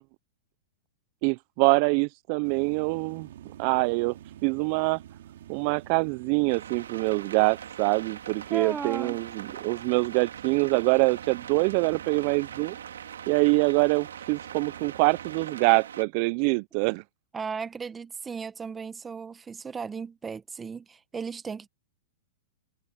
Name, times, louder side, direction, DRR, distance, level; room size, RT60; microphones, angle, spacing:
voice 1, 1.2-3.3 3.6-4.2 4.4-5.0 5.5-12.8 13.3-17.0, right 30 dB, 50° right, 0.4 m, -25 dB
sound 1, 2.4-15.5, right 11 dB, 75° right, 2.7 m, -49 dB
sound 2, 6.5-16.0, right 8 dB, 90° right, 2.6 m, -42 dB
voice 2, 8.5-9.2 17.3-21.7, right 5 dB, 15° right, 1.1 m, -36 dB
hypercardioid pair, 130°, 0 cm